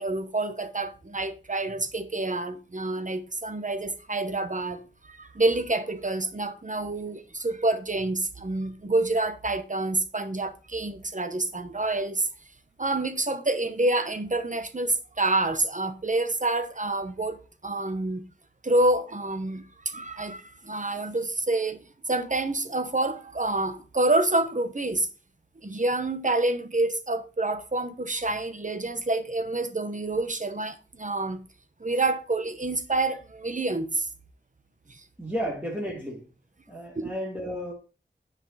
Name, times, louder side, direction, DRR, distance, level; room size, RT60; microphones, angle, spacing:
voice 1, 0.0-12.3 12.8-18.2 18.6-25.1 25.6-31.4 31.8-34.1 34.9-35.0 36.9-37.1, right 2 dB, 40° right, 1.0 m, -28 dB
voice 2, 35.2-36.3 36.7-37.7, equal, 10° right, 2.0 m, -32 dB
9.7 x 5.2 x 4.0 m
wide cardioid pair, 65°, 19 cm